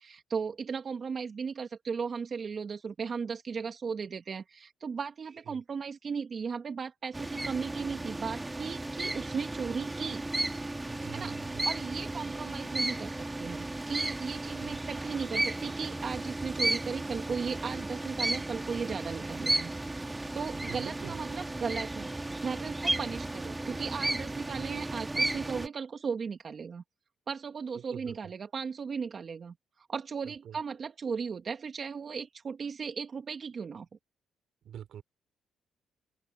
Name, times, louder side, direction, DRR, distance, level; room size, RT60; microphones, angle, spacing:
voice 1, 0.0-10.2 11.1-13.1 13.4-19.7 20.3-22.1 22.4-26.8 27.3-33.9, right 5 dB, 45° right, 1.9 m, -36 dB
sound 1, 7.1-25.7, right 2 dB, 15° right, 1.9 m, -34 dB
voice 2, 10.9-11.7 14.6-14.8 20.5-21.2 27.7-28.2 30.3-30.6 34.6-35.0, right 10 dB, 70° right, 3.8 m, -45 dB
open air
cardioid pair, 90°, 0 cm